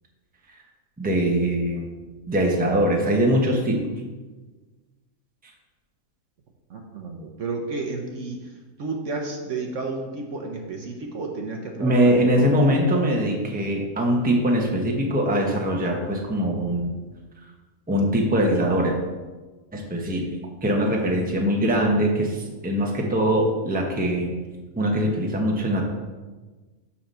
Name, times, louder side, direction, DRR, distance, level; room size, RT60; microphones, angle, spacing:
voice 1, 1.0-2.0 2.3-3.8 11.8-16.9 17.9-19.0 19.7-20.2 20.6-24.3 24.8-25.8, equal, 5° right, 0 dB, 0.9 m, -22 dB
voice 2, 6.7-12.5, right 3 dB, 60° right, 2 dB, 1.1 m, -32 dB
5.8 x 5.7 x 6.6 m, 1.3 s
omnidirectional pair, 1.6 m